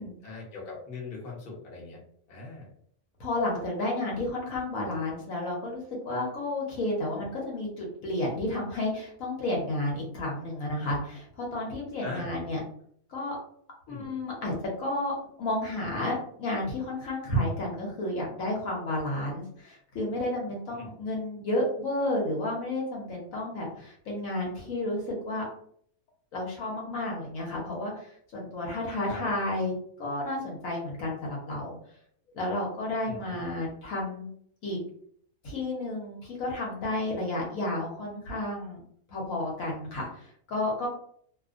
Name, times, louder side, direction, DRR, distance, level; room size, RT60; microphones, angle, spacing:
voice 1, 0.2-2.0 2.3-2.7 12.0-12.3 13.9-14.0 20.8-20.9 29.0-29.2 33.0-33.2, left 3 dB, 45° left, -3 dB, 0.9 m, -40 dB
voice 2, 3.2-12.6 13.1-13.4 13.9-25.4 26.3-31.8 32.3-34.3 34.6-34.8 35.4-38.8 39.1-40.9, left 1 dB, 65° left, -2 dB, 1.1 m, -31 dB
2.8 x 2.0 x 2.4 m, 0.63 s
omnidirectional pair, 1.6 m